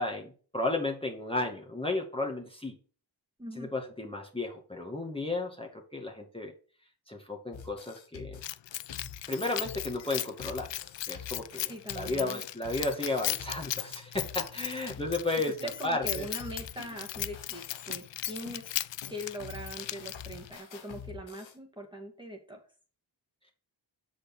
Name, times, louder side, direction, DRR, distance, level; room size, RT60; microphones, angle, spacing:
voice 1, 0.0-2.8 3.6-6.5 7.1-8.4 9.3-10.7 11.1-16.3, left 2 dB, 10° left, 0 dB, 2.1 m, -33 dB
voice 2, 3.4-3.7 11.7-12.4 15.6-18.6 19.1-22.6, equal, 10° right, 0 dB, 2.2 m, -41 dB
sound 1, 7.5-15.7 16.0-21.6, left 7 dB, 90° left, 1.2 m, -47 dB
Keys jangling, 8.4-20.5, left 13 dB, 70° left, 0.5 m, -37 dB
6.5 x 5.0 x 6.2 m, 0.39 s
cardioid pair, 45°, 45 cm